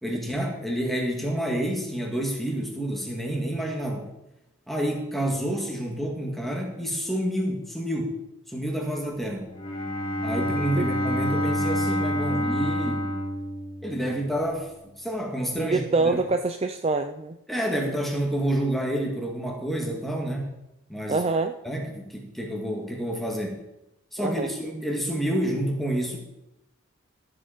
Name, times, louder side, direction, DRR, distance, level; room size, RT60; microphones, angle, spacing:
voice 1, 0.0-4.1 4.7-8.2 8.5-9.5 10.2-13.1 13.8-16.2 17.5-20.6 20.9-21.2 21.6-23.6 24.1-26.2, right 1 dB, ahead, 0 dB, 1.8 m, -29 dB
Bowed string instrument, 9.4-14.3, equal, 25° left, 2.5 m, -27 dB
voice 2, 15.6-17.4 21.1-21.5 24.2-24.5, right 3 dB, 25° right, 8 dB, 0.4 m, -25 dB
14.0 x 7.7 x 5.0 m, 0.90 s
head